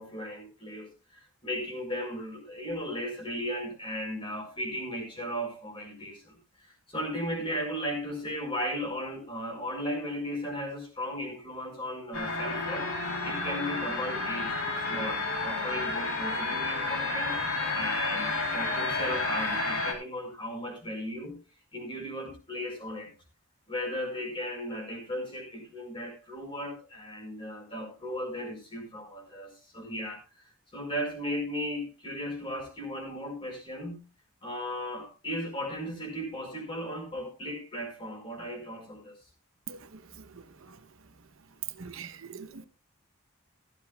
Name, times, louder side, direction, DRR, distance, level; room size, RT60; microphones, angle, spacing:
voice 1, 0.0-12.9 13.2-17.4 17.7-21.4 21.7-23.1 23.7-30.2 30.7-34.0 34.4-39.2, equal, 25° left, 4.9 m, -36 dB
sound 1, 12.1-19.9, left 3 dB, 70° left, 3.6 m, -31 dB
voice 2, 41.8-42.7, right 6 dB, 65° right, 0.9 m, -42 dB
15.5 x 14.0 x 2.3 m
head